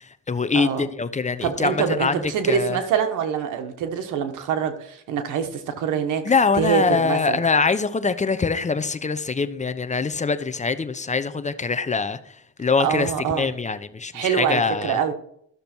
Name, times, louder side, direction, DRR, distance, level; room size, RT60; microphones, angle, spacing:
voice 1, 0.0-2.8 6.2-12.2 12.6-15.0, left 4 dB, 25° left, 0.8 m, -23 dB
voice 2, 0.5-0.9 1.4-6.2 6.5-7.4 12.8-13.5 14.1-15.1, right 7 dB, 90° right, 1.3 m, -25 dB
12.5 x 6.8 x 4.4 m
cardioid pair, 90°, 30 cm